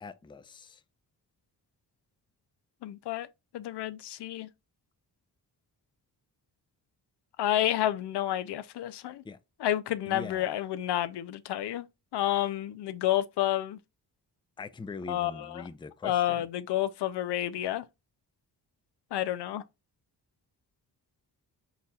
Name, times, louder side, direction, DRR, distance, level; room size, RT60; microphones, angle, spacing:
voice 1, 0.0-0.8 9.2-9.4 10.1-10.6 14.6-16.5, left 4 dB, 15° left, 0.4 m, -42 dB
voice 2, 2.8-3.3 3.5-4.5 7.4-9.2 9.6-11.9 12.1-13.8 15.1-15.7 16.0-17.8 19.1-19.6, left 12 dB, 85° left, 0.5 m, -30 dB
4.1 x 4.0 x 2.3 m
cardioid pair, 70°, 40 cm